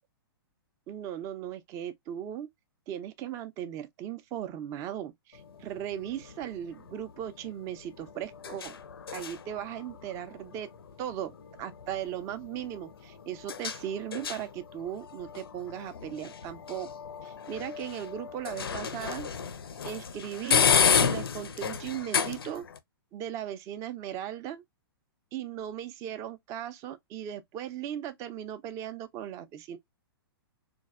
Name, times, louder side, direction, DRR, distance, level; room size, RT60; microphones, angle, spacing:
voice 1, 0.9-2.5 2.9-8.8 9.1-10.7 11.0-11.3 11.6-16.9 17.2-19.3 19.8-20.7 21.0-22.6 23.1-24.6 25.3-29.8, right 10 dB, 25° right, 0.3 m, -37 dB
sound 1, 5.3-22.8, left 7 dB, 70° left, 0.4 m, -32 dB
3.1 x 2.2 x 2.3 m
figure-of-eight pair, 110°, 13 cm